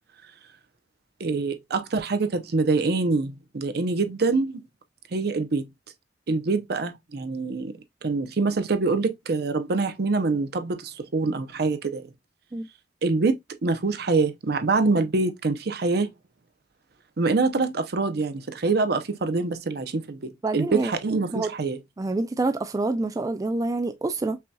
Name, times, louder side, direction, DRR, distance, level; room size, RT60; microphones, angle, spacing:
voice 1, 1.2-4.6 5.1-5.7 6.3-7.7 8.0-12.1 13.0-16.1 17.2-21.8, right 3 dB, 60° right, 0.6 m, -25 dB
voice 2, 20.4-20.9 21.3-21.5 22.0-24.4, right 2 dB, 20° right, 0.3 m, -27 dB
5.6 x 2.7 x 2.2 m
head